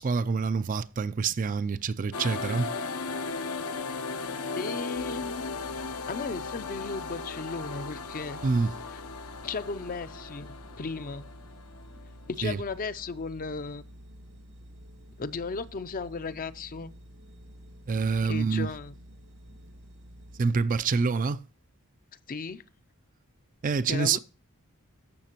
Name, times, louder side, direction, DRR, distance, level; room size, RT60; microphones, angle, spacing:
voice 1, 0.0-2.7 8.4-8.7 12.4-12.6 17.9-18.7 20.4-21.4 23.6-24.2, right 4 dB, 35° right, 0.4 m, -26 dB
sound 1, 2.1-12.4, left 4 dB, 75° left, 0.7 m, -37 dB
voice 2, 4.6-5.4 6.1-8.4 8.9-9.0 9.4-11.3 12.3-13.8 15.2-16.9 18.3-18.9 22.3-22.6 23.9-24.2, left 4 dB, 40° left, 0.5 m, -35 dB
sound 2, 4.9-20.4, equal, 85° right, 1.9 m, -50 dB
14.0 x 5.8 x 2.9 m
head